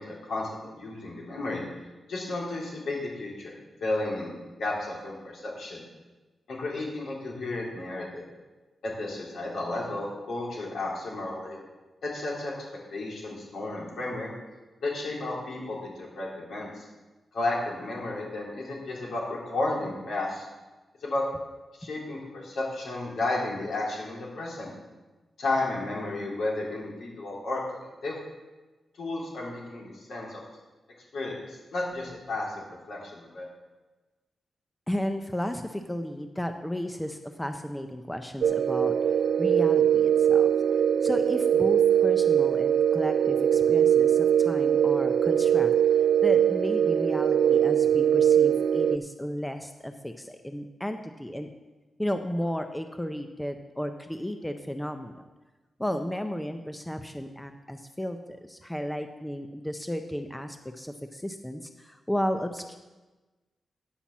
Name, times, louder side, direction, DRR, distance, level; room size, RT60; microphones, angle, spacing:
voice 1, 0.0-1.6 2.1-4.3 4.6-5.8 6.5-8.3 8.8-11.6 12.0-12.5 12.9-14.3 14.8-16.9 17.3-20.5 21.0-21.2 21.8-24.7 25.4-28.2 29.0-30.4 31.1-33.5, left 2 dB, 75° left, -4 dB, 3.5 m, -33 dB
voice 2, 34.9-38.9 39.4-45.7 46.2-51.5 52.0-55.3 55.8-62.8, equal, 5° left, 6 dB, 0.5 m, -34 dB
sound 1, 38.4-49.0, right 9 dB, 80° right, 0.4 m, -22 dB
10.0 x 5.7 x 7.2 m, 1.2 s
wide cardioid pair, 140°, 0 cm